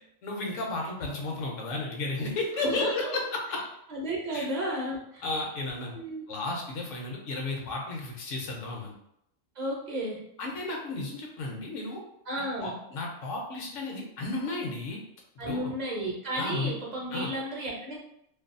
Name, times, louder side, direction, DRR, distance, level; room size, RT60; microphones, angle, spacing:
voice 1, 0.2-3.6 4.3-4.5 5.2-5.9 6.3-8.9 10.4-12.0 12.6-15.0 15.4-15.7 16.3-16.7 17.1-17.3, left 2 dB, 75° left, 0 dB, 1.0 m, -33 dB
voice 2, 2.5-3.2 3.9-5.3 5.9-6.2 9.6-10.2 12.3-12.8 15.4-18.0, right 1 dB, 40° right, -3 dB, 0.7 m, -33 dB
2.6 x 2.3 x 2.5 m, 0.76 s
omnidirectional pair, 1.3 m